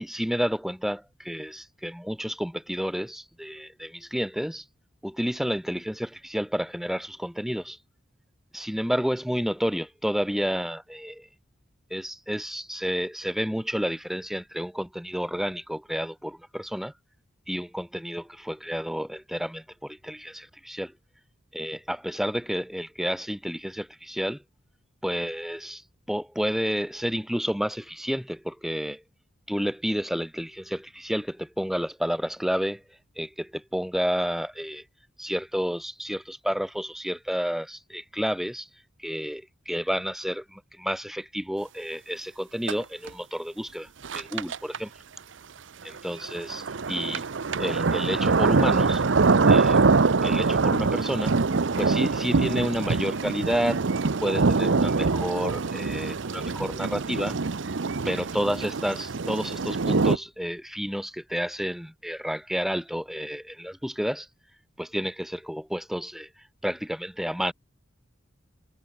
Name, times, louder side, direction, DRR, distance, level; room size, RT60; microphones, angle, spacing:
voice 1, 0.0-4.6 5.0-7.8 8.5-11.3 11.9-16.9 17.5-20.9 21.5-24.4 25.0-25.8 26.1-29.0 29.5-32.8 33.2-34.8 35.2-38.7 39.0-44.9 45.8-47.2 47.6-49.0 49.5-49.8 50.2-51.3 51.8-53.8 54.2-57.4 58.0-64.3 64.8-66.3 66.6-67.5, equal, ahead, 1.3 m, -30 dB
sound 1, 42.7-42.8 43.1-43.2 44.0-44.8 46.0-60.2, right 4 dB, 70° right, 0.7 m, -24 dB
head